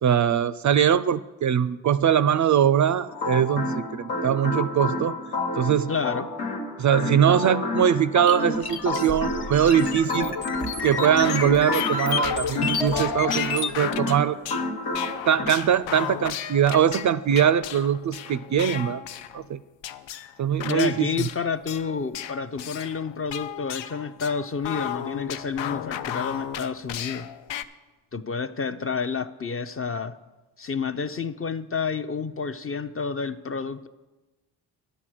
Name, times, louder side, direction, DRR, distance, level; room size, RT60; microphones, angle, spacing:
voice 1, 0.0-5.2 5.6-5.9 6.8-10.3 10.8-14.4 15.2-19.0 19.3-19.6 20.4-21.1, right 9 dB, 40° right, 16 dB, 0.4 m, -22 dB
sound 1, 3.1-15.5, left 2 dB, 90° left, 1.5 m, -30 dB
voice 2, 5.9-6.3 20.7-27.3 28.1-30.2 30.6-33.9, left 5 dB, 30° left, 11 dB, 0.6 m, -29 dB
sound 2, 8.3-13.8, left 5 dB, 55° left, 1.0 m, -30 dB
sound 3, 11.0-19.5 19.8-27.6, left 10 dB, 70° left, 0.6 m, -35 dB
9.7 x 7.8 x 6.2 m, 1.1 s
supercardioid pair, 45°, 45 cm